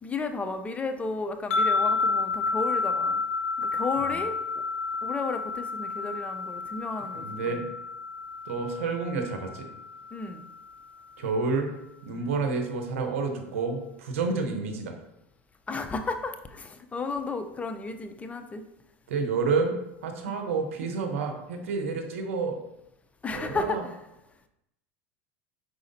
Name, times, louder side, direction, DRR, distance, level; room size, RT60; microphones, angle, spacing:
voice 1, 0.0-3.2 3.6-4.4 5.0-7.6 10.1-10.5 14.3-14.4 15.7-18.6 20.2-20.3 23.2-24.0, left 3 dB, 20° left, 7 dB, 0.5 m, -33 dB
sound 1, 1.5-10.8, left 4 dB, 90° left, 0.4 m, -30 dB
voice 2, 7.1-7.7 8.5-9.7 11.2-11.7 12.0-15.0 19.1-19.8 20.0-22.6 23.3-23.9, right 4 dB, 85° right, 4 dB, 0.8 m, -29 dB
4.9 x 4.1 x 2.6 m, 0.86 s
supercardioid pair, 100°, 7 cm